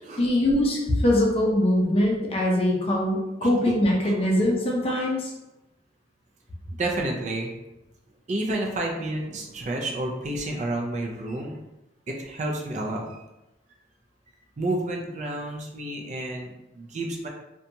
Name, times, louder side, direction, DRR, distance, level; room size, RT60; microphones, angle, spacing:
voice 1, 0.2-5.3, left 1 dB, 30° left, -2 dB, 0.5 m, -22 dB
voice 2, 3.4-3.7 4.0-4.3 6.8-7.5 8.3-11.6 12.1-13.1 14.6-17.3, right 2 dB, 40° right, 1 dB, 0.4 m, -30 dB
2.7 x 2.2 x 2.6 m, 0.96 s
head